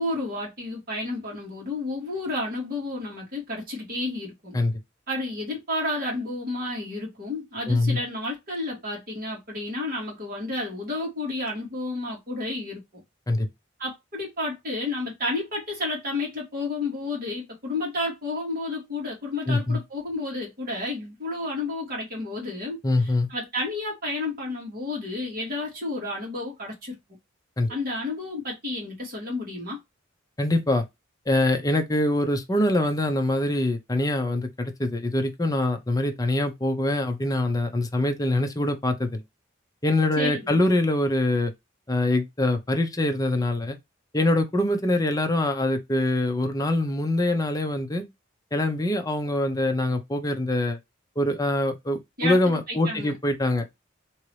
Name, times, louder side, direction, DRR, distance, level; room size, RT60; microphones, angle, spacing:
voice 1, 0.0-4.6 5.1-13.0 13.8-27.0 27.7-29.8 40.2-40.6 52.2-52.4 52.7-53.2, left 2 dB, 45° right, 2.3 m, -31 dB
voice 2, 7.7-8.0 13.3-13.5 19.5-19.8 22.8-23.3 27.6-27.7 30.4-30.8 31.3-39.2 39.8-41.5 41.9-43.8 44.1-48.0 48.5-50.8 51.2-53.6, left 1 dB, 20° left, 0.6 m, -24 dB
3.7 x 2.9 x 3.1 m
head